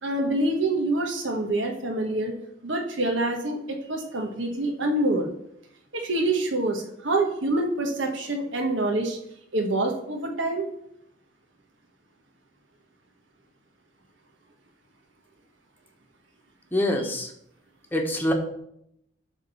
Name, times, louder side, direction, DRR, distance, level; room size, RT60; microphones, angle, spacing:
voice 1, 0.0-2.3 2.6-3.6 3.9-5.3 5.9-9.2 9.5-10.6, right 2 dB, 75° right, 1 dB, 1.3 m, -26 dB
voice 2, 16.7-17.3 17.9-18.3, left 1 dB, 10° left, 2 dB, 1.2 m, -25 dB
10.5 x 3.7 x 6.9 m, 0.76 s
head